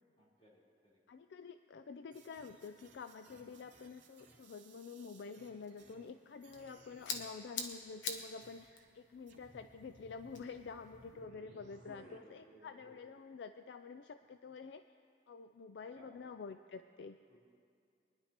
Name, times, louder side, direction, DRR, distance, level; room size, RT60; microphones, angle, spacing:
voice 1, 0.2-1.0 3.3-3.5 11.6-13.0 15.9-16.1 17.3-17.4, equal, 35° left, -7 dB, 3.7 m, -60 dB
voice 2, 1.1-14.8 15.3-17.2, left 5 dB, 70° left, 9 dB, 0.4 m, -49 dB
sound 1, 2.1-6.1 6.4-7.3 8.4-8.8 9.3-12.2, right 2 dB, 75° right, 2.5 m, -62 dB
sound 2, 6.2-11.3, left 4 dB, 90° left, 1.1 m, -47 dB
23.5 x 10.5 x 2.9 m, 2.3 s
head